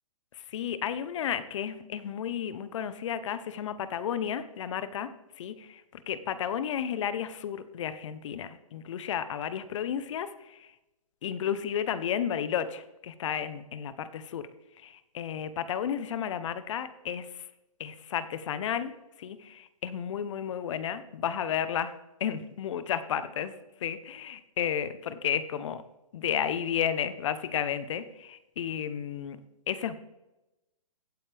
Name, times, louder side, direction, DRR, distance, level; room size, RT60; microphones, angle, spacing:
voice 1, 0.5-5.1 5.4-10.7 11.2-14.5 14.8-17.5 17.8-18.9 19.2-21.9 22.2-23.5 23.8-25.8 26.1-29.4 29.7-29.9, left 9 dB, 60° left, 13 dB, 1.0 m, -32 dB
16.5 x 8.8 x 3.5 m, 0.96 s
hypercardioid pair, 135°, 18 cm